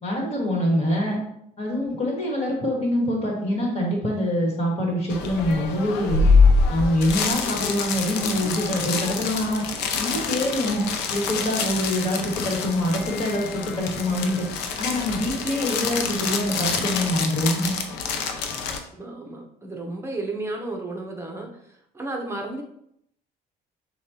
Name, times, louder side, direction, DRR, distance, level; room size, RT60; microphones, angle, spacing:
voice 1, 0.0-1.2 1.6-6.2 6.7-9.6 10.0-14.5 14.8-17.7, left 1 dB, 40° left, -1 dB, 1.7 m, -25 dB
sound 1, 5.1-18.8, left 4 dB, 90° left, 0.6 m, -25 dB
voice 2, 19.0-22.6, right 2 dB, 15° right, 1 dB, 0.8 m, -33 dB
6.4 x 2.4 x 2.8 m, 0.73 s
cardioid pair, 110°, 17 cm